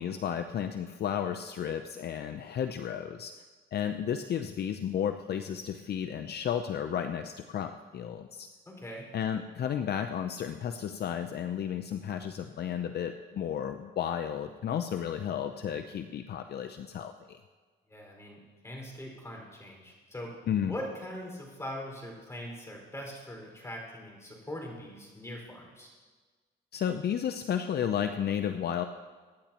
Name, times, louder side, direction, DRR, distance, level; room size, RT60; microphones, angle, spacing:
voice 1, 0.0-3.3 3.7-8.5 9.1-17.4 20.5-20.7 26.7-28.9, left 9 dB, 55° left, 7 dB, 0.6 m, -33 dB
voice 2, 8.6-9.1 17.9-20.3 20.6-25.9, equal, 15° left, -1 dB, 5.0 m, -41 dB
24.0 x 10.0 x 3.0 m, 1.4 s
cardioid pair, 90°, 20 cm